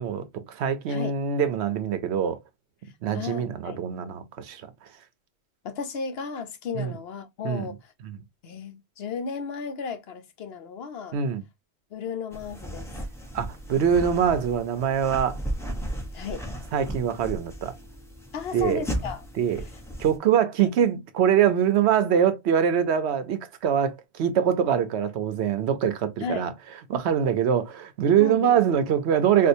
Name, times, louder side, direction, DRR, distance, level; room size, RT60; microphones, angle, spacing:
voice 1, 0.0-2.4 3.0-4.6 6.7-7.0 7.4-7.7 8.0-8.2 11.1-11.4 13.3-15.4 16.7-17.7 18.5-18.8 19.4-19.6 20.0-26.5 26.9-29.5, right 8 dB, 80° right, 0.9 m, -23 dB
voice 2, 3.1-3.8 5.6-7.9 8.4-11.2 11.9-12.9 16.1-16.4 18.3-19.2 26.2-26.5 28.2-28.6, left 5 dB, 70° left, 0.9 m, -34 dB
sound 1, 12.3-20.2, equal, 5° left, 0.8 m, -35 dB
4.4 x 2.3 x 2.6 m
omnidirectional pair, 1.1 m